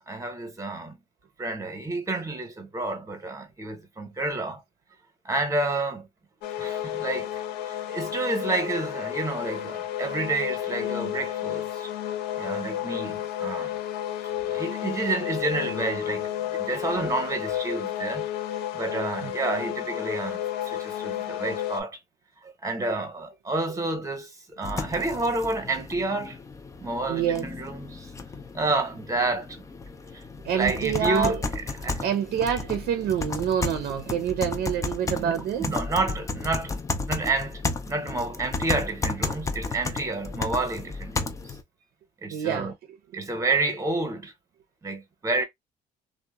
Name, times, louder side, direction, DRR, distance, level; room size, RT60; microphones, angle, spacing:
voice 1, 0.1-1.0 1.4-4.6 5.2-6.1 6.6-11.9 12.4-13.7 14.5-18.3 18.7-22.0 22.4-26.4 26.8-28.1 28.5-29.6 30.1-30.2 30.5-31.4 31.8-32.0 35.0-35.3 35.6-36.8 37.1-41.6 42.2-42.7 43.1-44.3 44.8-45.4, right 2 dB, 20° right, 0.8 m, -29 dB
sound 1, 6.4-21.8, left 11 dB, 85° left, 0.5 m, -31 dB
sound 2, 24.6-41.6, left 3 dB, 20° left, 0.4 m, -33 dB
voice 2, 27.1-27.5 30.4-31.4 32.0-35.7 42.3-42.7, right 9 dB, 70° right, 0.5 m, -26 dB
2.7 x 2.0 x 2.2 m
cardioid pair, 110°, 17 cm